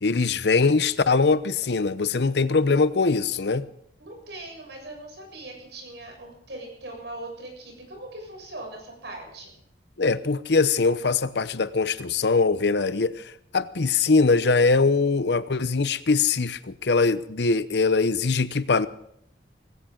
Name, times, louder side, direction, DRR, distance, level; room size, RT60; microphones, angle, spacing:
voice 1, 0.0-3.7 10.0-18.9, left 4 dB, 70° left, 15 dB, 0.7 m, -22 dB
voice 2, 4.0-9.5, right 2 dB, 75° right, 1 dB, 7.2 m, -40 dB
19.0 x 17.0 x 3.8 m, 0.73 s
head